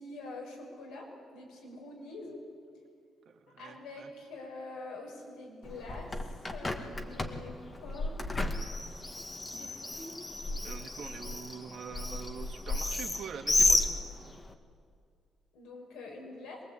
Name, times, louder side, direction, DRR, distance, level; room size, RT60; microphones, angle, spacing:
voice 1, 0.0-2.4 3.6-8.5 9.5-10.1 15.5-16.6, left 2 dB, 90° left, 0 dB, 6.3 m, -45 dB
voice 2, 3.3-4.1 10.6-14.0, right 6 dB, 65° right, 2 dB, 2.3 m, -44 dB
Bird, 5.6-14.5, left 2 dB, 25° left, 2.0 m, -33 dB
23.0 x 21.0 x 8.6 m, 2.2 s
cardioid pair, 90°, 0 cm